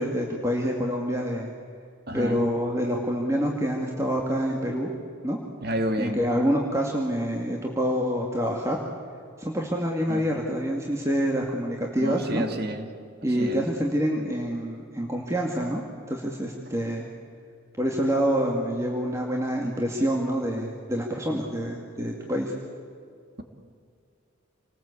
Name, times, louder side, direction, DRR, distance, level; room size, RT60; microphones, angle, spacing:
voice 1, 0.0-1.5 2.1-4.9 5.2-5.4 6.0-8.8 9.4-12.4 13.2-15.8 16.1-17.1 17.8-22.5, equal, 15° right, -1 dB, 2.2 m, -27 dB
voice 2, 2.1-2.4 5.6-6.2 10.1-10.3 12.0-12.9 13.2-13.7, equal, 50° right, 6 dB, 2.4 m, -30 dB
28.0 x 20.0 x 8.5 m, 2.3 s
head